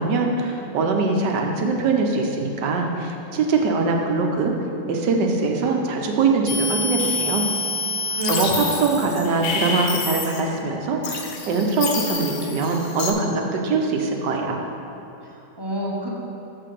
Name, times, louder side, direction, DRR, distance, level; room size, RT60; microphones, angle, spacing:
voice 1, 0.0-4.6 4.9-7.5 8.3-14.6, right 3 dB, 75° right, 2 dB, 1.5 m, -22 dB
sound 1, 6.5-10.6 11.0-13.1, left 3 dB, 55° left, 1.0 m, -27 dB
voice 2, 8.1-9.0 15.2-16.1, right 1 dB, 20° right, -3 dB, 0.8 m, -30 dB
6.8 x 5.8 x 6.8 m, 2.8 s
omnidirectional pair, 1.9 m